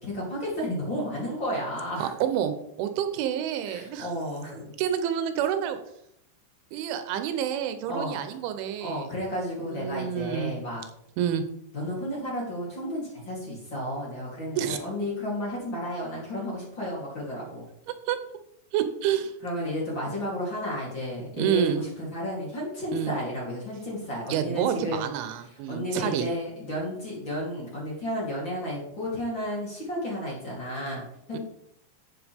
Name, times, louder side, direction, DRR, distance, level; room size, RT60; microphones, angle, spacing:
voice 1, 0.0-2.1 3.6-4.7 7.9-8.1 8.8-10.8 11.7-17.6 19.4-25.0 25.7-31.0 31.3-31.4, equal, 30° left, -5 dB, 3.2 m, -32 dB
voice 2, 2.0-4.1 4.8-5.8 6.7-9.1 9.7-10.5 11.2-11.5 14.6-14.8 18.1-18.2 18.7-19.3 21.4-21.8 22.9-23.1 24.3-26.3 31.3-31.4, right 9 dB, 85° right, 9 dB, 3.2 m, -28 dB
12.0 x 8.1 x 3.5 m, 0.76 s
omnidirectional pair, 5.4 m